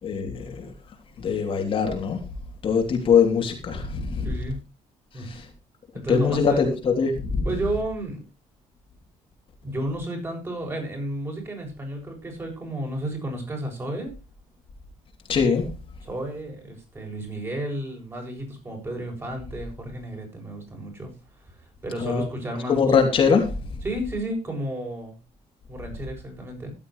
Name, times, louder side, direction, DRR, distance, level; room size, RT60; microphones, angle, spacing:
voice 1, 0.0-0.7 1.2-2.2 2.6-4.3 5.1-5.5 6.1-7.5 15.3-15.7 22.0-22.2 22.7-23.7, left 6 dB, 45° left, 3.2 m, -22 dB
voice 2, 4.2-4.6 5.1-5.4 5.9-6.6 7.4-8.2 9.6-14.2 16.0-21.1 21.4-21.6 21.8-23.2 23.8-25.2 25.7-26.7, right 1 dB, 20° right, 7.6 m, -32 dB
14.5 x 12.0 x 3.3 m
cardioid pair, 140°, 13 cm